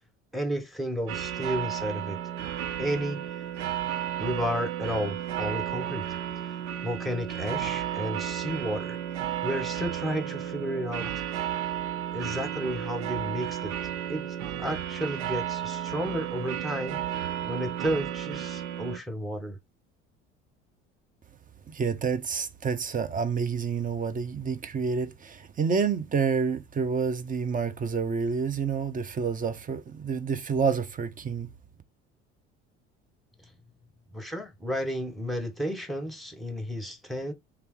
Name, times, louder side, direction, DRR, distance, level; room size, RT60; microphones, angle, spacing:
voice 1, 0.3-2.2 2.8-3.2 4.2-6.1 6.8-9.0 9.4-11.1 12.1-13.7 14.1-17.0 17.4-19.6 34.1-37.3, equal, ahead, 0.9 m, -32 dB
sound 1, 1.1-19.0, right 10 dB, 80° right, 0.5 m, -33 dB
voice 2, 21.7-31.5, right 5 dB, 25° right, 0.6 m, -28 dB
3.3 x 2.9 x 3.0 m
figure-of-eight pair, 60°, 35 cm